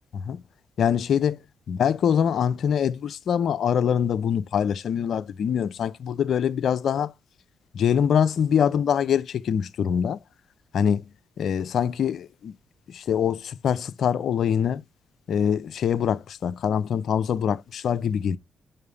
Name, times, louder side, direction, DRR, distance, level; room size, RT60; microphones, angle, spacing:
voice 1, 0.8-1.4 1.7-7.1 7.7-10.2 10.7-11.0 11.4-12.5 12.9-14.8 15.3-18.4, left 8 dB, 65° left, 0.5 m, -24 dB
6.6 x 5.6 x 3.3 m
hypercardioid pair, 45°, 0 cm